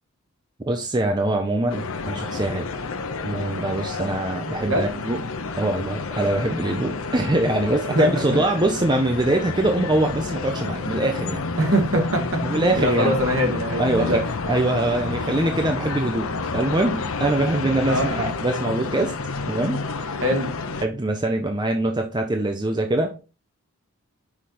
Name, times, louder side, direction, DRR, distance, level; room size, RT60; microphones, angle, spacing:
voice 1, 0.7-2.8 3.2-5.2 5.6-11.4 11.9-12.0 12.4-13.1 13.8-19.2 19.5-20.2 20.8-23.2, right 1 dB, 20° right, 4 dB, 0.6 m, -23 dB
sound 1, 1.7-20.9, left 3 dB, 65° left, 0.7 m, -29 dB
voice 2, 7.9-8.4 11.6-12.2 12.5-14.2 17.9-18.1 20.2-20.5, equal, 60° right, 1 dB, 2.2 m, -23 dB
5.9 x 4.9 x 4.3 m, 0.32 s
head